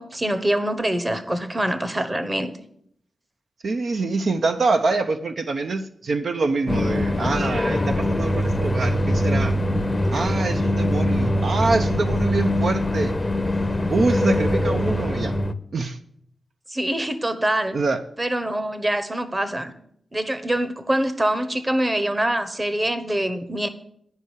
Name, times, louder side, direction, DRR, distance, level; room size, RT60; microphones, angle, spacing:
voice 1, 0.0-2.5 16.7-17.8 18.2-19.7 20.1-23.7, right 1 dB, 20° right, 11 dB, 1.1 m, -24 dB
voice 2, 3.6-9.5 10.1-13.2 13.9-15.3 15.7-16.0 17.7-18.0, right 3 dB, 65° right, 7 dB, 0.6 m, -25 dB
sound 1, 6.7-15.5, left 1 dB, 25° left, 0.6 m, -22 dB
10.0 x 5.5 x 8.1 m, 0.70 s
cardioid pair, 70°, 0 cm